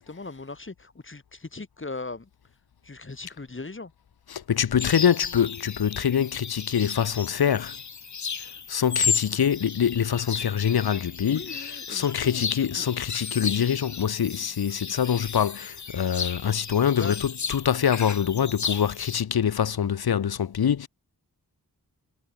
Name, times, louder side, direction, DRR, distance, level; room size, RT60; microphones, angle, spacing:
voice 1, 0.0-2.3 2.8-3.9 11.3-12.5 12.8-12.9 17.0-17.2, left 3 dB, 30° left, 1.7 m, -39 dB
voice 2, 4.3-7.8 8.7-11.4 11.9-20.9, left 8 dB, 75° left, 0.9 m, -24 dB
sound 1, 4.8-19.2, left 6 dB, 50° left, 0.9 m, -34 dB
wide cardioid pair, 55°, 38 cm